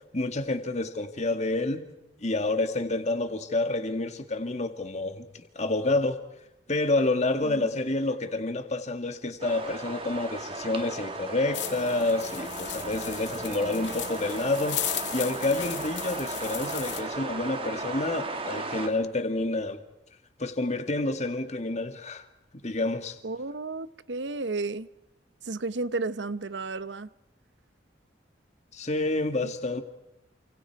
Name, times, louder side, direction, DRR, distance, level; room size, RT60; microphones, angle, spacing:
voice 1, 0.1-1.9 2.2-6.2 6.7-19.8 20.4-22.3 22.6-23.2 28.7-29.8, left 2 dB, 40° left, 2.0 m, -28 dB
sound 1, 9.4-18.9, right 3 dB, 30° right, 2.7 m, -36 dB
sound 2, 11.5-17.0, left 11 dB, 80° left, 2.3 m, -36 dB
voice 2, 23.2-24.9 25.4-27.1 29.4-29.5, right 3 dB, 75° right, 0.9 m, -33 dB
29.5 x 27.0 x 4.8 m
head